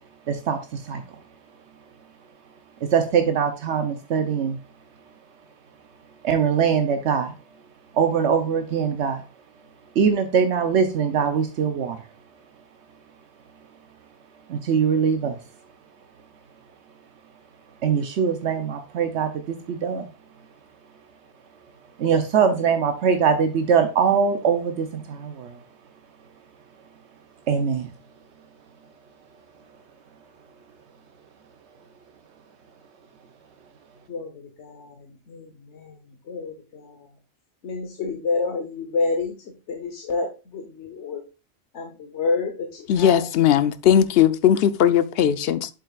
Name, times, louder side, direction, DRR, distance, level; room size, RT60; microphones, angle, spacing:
voice 1, 0.3-1.0 2.9-4.6 6.2-7.3 7.9-9.2 10.0-12.0 14.5-15.4 17.8-20.1 22.0-25.6 27.5-27.9, right 6 dB, 85° right, 1.0 m, -22 dB
voice 2, 36.3-36.8 37.6-39.3 39.7-40.3 40.5-41.2 41.7-42.5 43.0-43.2, left 4 dB, 80° left, 1.3 m, -27 dB
voice 3, 42.9-45.7, left 10 dB, 65° left, 0.8 m, -18 dB
7.7 x 7.5 x 2.4 m
omnidirectional pair, 1.1 m